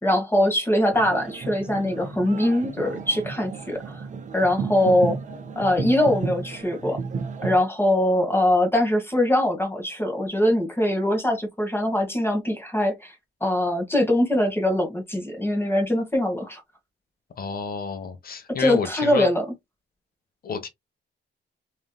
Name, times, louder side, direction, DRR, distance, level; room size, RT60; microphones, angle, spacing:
voice 1, 0.0-4.0 4.3-5.2 5.5-7.0 7.4-13.1 13.4-16.6 18.5-19.4, left 1 dB, 10° left, 1.2 m, -22 dB
sound 1, 0.9-7.6, right 5 dB, 40° right, 0.7 m, -33 dB
voice 2, 17.4-19.3 20.4-20.7, left 5 dB, 50° left, 0.8 m, -30 dB
3.3 x 2.8 x 2.2 m
cardioid pair, 90°, 20 cm